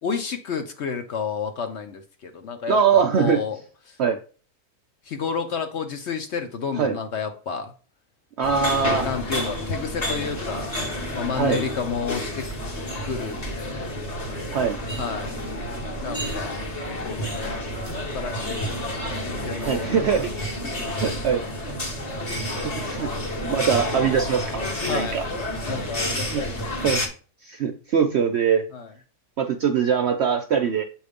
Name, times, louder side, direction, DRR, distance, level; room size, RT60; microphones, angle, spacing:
voice 1, 0.0-3.6 3.9-4.0 5.0-7.7 9.0-10.7 11.1-12.5 13.0-14.0 15.0-15.4 16.0-16.6 17.0-17.6 18.0-18.8 19.2-20.3 20.6-21.5 24.9-25.2 25.7-27.0 28.7-28.9, left 6 dB, 55° left, 6 dB, 0.9 m, -31 dB
voice 2, 2.7-3.4 4.0-4.2 6.8-7.0 8.4-9.1 11.4-11.6 14.5-14.8 19.6-20.4 21.0-21.4 22.5-25.2 26.3-26.4 26.8-27.0 27.4-28.6 29.4-30.8, right 7 dB, 65° right, 6 dB, 0.7 m, -22 dB
sound 1, 8.4-27.1, left 1 dB, 30° left, 1.0 m, -30 dB
7.8 x 2.7 x 5.1 m, 0.38 s
omnidirectional pair, 1.6 m